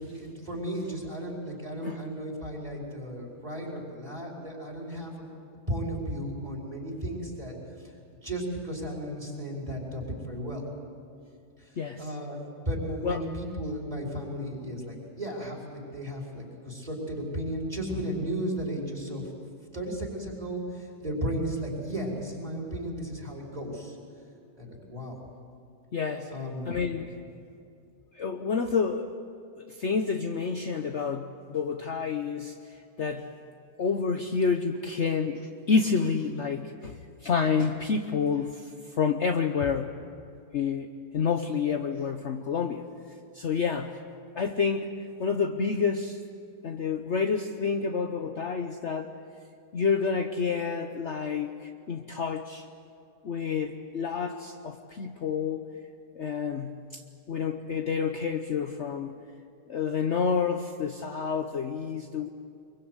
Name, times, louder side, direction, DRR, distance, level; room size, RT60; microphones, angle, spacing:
voice 1, 0.0-5.2 5.7-7.9 8.2-10.6 11.6-19.3 19.7-24.0 24.6-25.2 26.3-26.8, equal, 25° right, -2 dB, 5.1 m, -34 dB
voice 2, 11.8-12.1 13.0-13.2 25.9-26.3 26.6-27.1 28.1-29.1 29.8-33.3 33.8-37.0 37.2-38.7 39.0-40.0 40.5-40.9 41.1-42.8 43.3-43.9 44.3-44.9 45.2-46.2 46.6-49.1 49.7-52.6 53.2-55.7 56.2-57.0 57.3-59.1 59.7-62.3, left 5 dB, 50° left, 5 dB, 1.1 m, -29 dB
25.0 x 23.0 x 8.1 m, 2.5 s
omnidirectional pair, 1.7 m